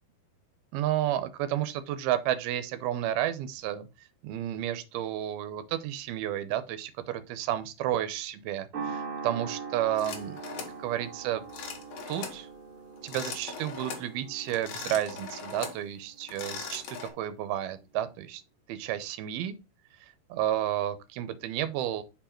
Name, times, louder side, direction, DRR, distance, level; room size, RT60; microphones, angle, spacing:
voice 1, 0.7-3.9 4.2-10.4 10.8-11.4 12.1-12.5 13.0-18.4 18.7-19.6 20.3-22.0, right 12 dB, 80° right, 2.5 m, -31 dB
sound 1, 8.7-17.2, right 5 dB, 50° right, 1.6 m, -42 dB
sound 2, 10.0-10.8 11.5-12.4 13.0-14.1 14.5-15.8 16.2-17.1, left 5 dB, 65° left, 1.7 m, -40 dB
5.4 x 4.6 x 4.3 m
omnidirectional pair, 4.5 m